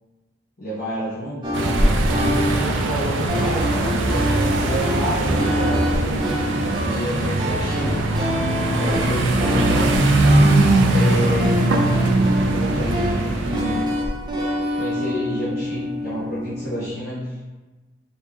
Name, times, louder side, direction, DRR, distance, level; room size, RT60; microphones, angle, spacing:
voice 1, 0.6-1.5 2.1-6.5 6.8-8.0 8.8-10.0 10.9-12.2 12.5-13.8 14.8-17.5, equal, 50° left, -12 dB, 1.3 m, -29 dB
sound 1, 1.4-16.9, left 1 dB, 25° right, 0.7 m, -26 dB
sound 2, 1.5-14.0, right 2 dB, 75° right, 0.5 m, -21 dB
4.4 x 3.0 x 3.5 m, 1.2 s
head